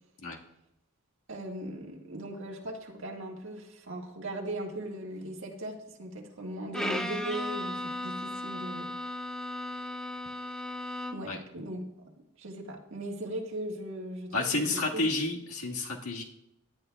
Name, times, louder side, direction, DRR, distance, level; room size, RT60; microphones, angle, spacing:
voice 1, 1.3-8.9 11.1-11.8 12.4-15.0, right 1 dB, 60° right, 0 dB, 1.7 m, -38 dB
Bowed string instrument, 6.7-11.4, left 1 dB, 5° left, 0.5 m, -36 dB
voice 2, 14.3-16.2, left 2 dB, 80° left, -1 dB, 1.7 m, -30 dB
17.5 x 10.5 x 2.3 m, 0.86 s
head